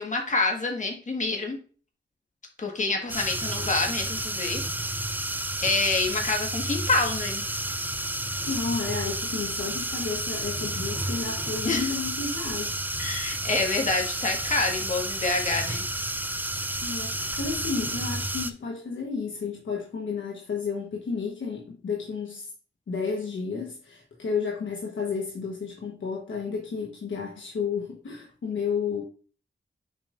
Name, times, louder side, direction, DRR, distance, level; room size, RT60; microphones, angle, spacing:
voice 1, 0.0-1.6 2.6-4.6 5.6-7.4 11.6-11.9 13.0-15.8, left 3 dB, 40° left, 1.5 m, -27 dB
sound 1, 3.1-18.5, right 1 dB, 10° right, 0.5 m, -31 dB
voice 2, 8.5-12.7 16.8-22.5 22.9-29.0, left 5 dB, 85° left, 1.2 m, -32 dB
7.1 x 5.2 x 2.5 m
wide cardioid pair, 105°, 19 cm